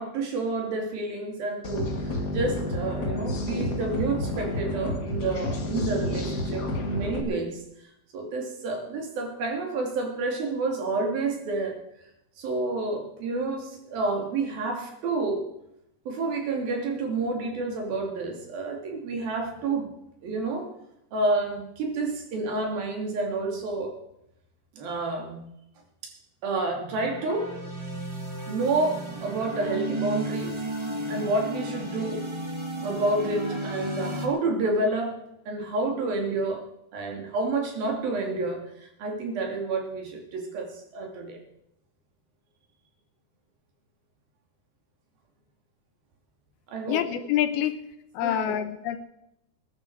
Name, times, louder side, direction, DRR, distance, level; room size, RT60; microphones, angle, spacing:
voice 1, 0.0-7.6 8.1-11.8 12.4-15.5 16.1-19.9 20.2-20.7 21.1-23.9 24.8-25.5 26.0-26.1 26.4-27.5 28.5-30.6 31.1-32.2 32.8-35.2 35.5-36.6 36.9-41.4 46.7-47.0 48.2-48.6, right 3 dB, 65° right, 2 dB, 4.5 m, -29 dB
sound 1, 1.6-7.2, left 1 dB, 40° left, 1.5 m, -30 dB
sound 2, 26.7-34.3, right 1 dB, 15° right, 0.8 m, -34 dB
voice 2, 46.9-47.8 48.1-49.0, left 11 dB, 75° left, 10 dB, 2.8 m, -26 dB
21.0 x 11.5 x 4.7 m, 0.81 s
omnidirectional pair, 4.6 m